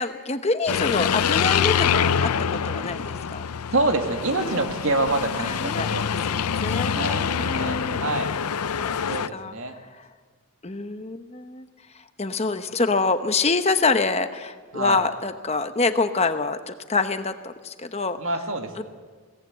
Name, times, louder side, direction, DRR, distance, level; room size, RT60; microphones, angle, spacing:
voice 1, 0.0-2.3 2.6-3.4 4.4-4.6 5.4-5.9 6.3-8.0 8.8-9.0 9.3-10.0 10.6-11.7 12.2-18.2 18.8-18.9, left 3 dB, 30° left, 9 dB, 0.9 m, -26 dB
sound 1, 0.7-9.3, left 7 dB, 90° left, 0.6 m, -25 dB
voice 2, 3.7-6.1 6.9-8.3 9.1-9.7 14.7-15.0 18.2-18.8, right 2 dB, 65° right, 5 dB, 2.1 m, -26 dB
22.0 x 17.5 x 8.0 m, 1.5 s
head